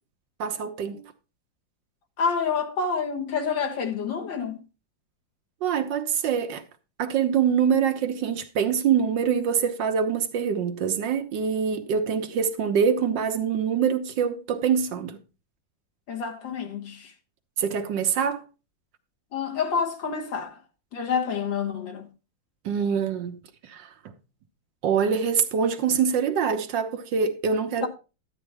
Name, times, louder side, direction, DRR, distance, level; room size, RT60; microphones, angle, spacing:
voice 1, 0.4-1.0 5.6-6.6 7.0-15.2 17.6-18.5 22.6-23.9 24.8-27.9, right 7 dB, 70° right, 1.6 m, -25 dB
voice 2, 2.2-4.6 16.1-17.1 19.3-20.6 20.9-22.1 27.8-27.9, left 6 dB, 70° left, 2.2 m, -28 dB
12.0 x 8.8 x 3.4 m
omnidirectional pair, 2.1 m